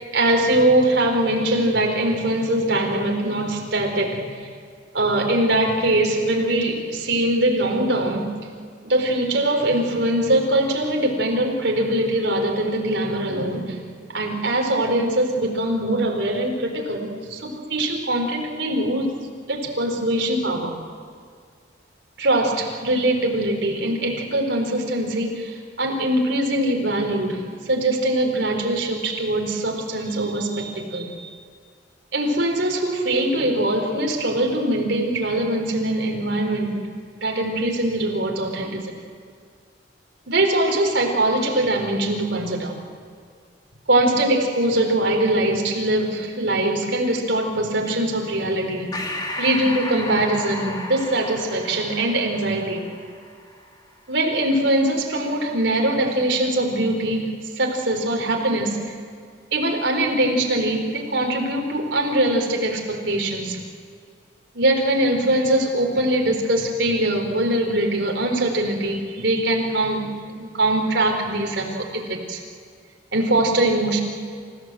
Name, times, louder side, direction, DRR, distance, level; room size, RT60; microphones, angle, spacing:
voice 1, 0.1-4.5 4.9-8.3 8.8-13.8 14.1-19.1 19.5-20.7 22.2-31.3 32.1-36.8 37.1-38.9 40.3-42.7 43.9-49.0 49.4-52.9 54.1-57.3 57.6-58.9 59.5-63.6 64.5-72.4 73.1-74.0, right 1 dB, 65° right, 1 dB, 4.4 m, -22 dB
Breathing, 48.9-53.8, left 1 dB, 20° left, 2.2 m, -34 dB
28.5 x 16.5 x 7.9 m, 2.1 s
head